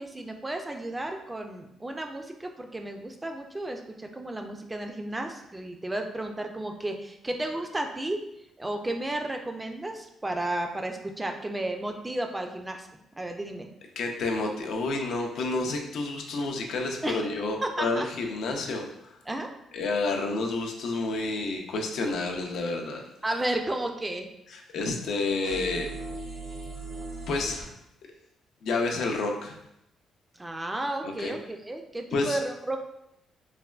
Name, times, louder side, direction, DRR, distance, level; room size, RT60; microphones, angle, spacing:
voice 1, 0.0-8.2 8.6-12.9 13.2-13.7 17.0-17.3 17.6-18.1 19.3-19.5 23.2-24.3 30.3-32.8, right 1 dB, 15° right, 4 dB, 0.3 m, -33 dB
voice 2, 14.0-19.1 19.7-23.0 24.5-25.9 27.3-27.6 28.6-29.6 31.0-31.3 32.1-32.4, left 3 dB, 75° left, 2 dB, 0.4 m, -29 dB
sound 1, 25.4-27.6, right 3 dB, 75° right, 1.1 m, -38 dB
3.2 x 2.1 x 2.3 m, 0.82 s
cardioid pair, 90°, 0 cm